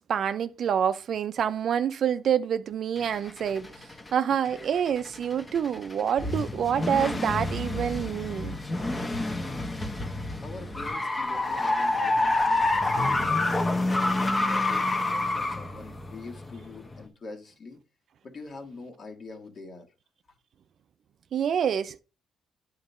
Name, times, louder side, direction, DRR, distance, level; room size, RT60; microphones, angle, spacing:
voice 1, 0.0-3.7 4.1-8.6 21.3-22.0, right 8 dB, 60° right, 0.5 m, -27 dB
sound 1, 3.0-4.1 4.5-17.1, left 2 dB, 20° left, 1.0 m, -28 dB
voice 2, 10.4-13.8 14.4-17.8 18.2-19.9, left 3 dB, 45° left, 1.8 m, -44 dB
9.7 x 4.0 x 5.5 m
cardioid pair, 90°, 0 cm